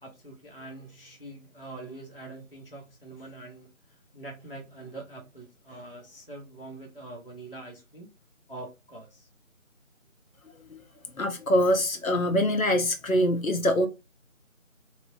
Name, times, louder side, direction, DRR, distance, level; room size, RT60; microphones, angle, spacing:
voice 1, 0.0-3.7 4.1-8.1 8.5-9.3, right 2 dB, 45° left, 0.5 m, -44 dB
voice 2, 11.2-13.9, equal, 75° left, 0.8 m, -24 dB
2.9 x 2.0 x 2.6 m
figure-of-eight pair, 175°, 42 cm